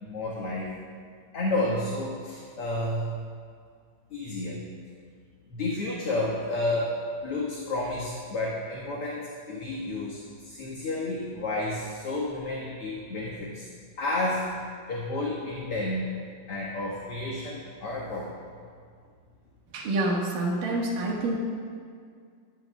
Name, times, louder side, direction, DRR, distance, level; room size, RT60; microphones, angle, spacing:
voice 1, 0.0-0.7 1.3-3.2 4.1-4.6 5.5-7.0 7.2-13.7 14.0-14.5 14.9-16.1 16.5-18.3, left 2 dB, 50° left, -5 dB, 2.2 m, -31 dB
voice 2, 19.7-21.4, right 2 dB, 85° right, -2 dB, 3.2 m, -27 dB
19.0 x 15.0 x 2.3 m, 2.1 s
omnidirectional pair, 3.7 m